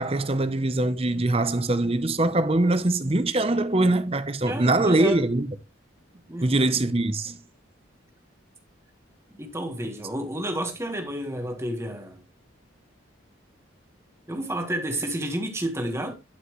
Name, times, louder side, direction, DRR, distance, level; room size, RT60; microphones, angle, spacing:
voice 1, 0.0-5.5 6.4-7.4, right 2 dB, 30° right, 0.8 m, -23 dB
voice 2, 4.4-5.3 6.3-6.7 9.4-12.2 14.3-16.1, right 1 dB, 15° right, 1.5 m, -31 dB
11.5 x 5.7 x 3.1 m
head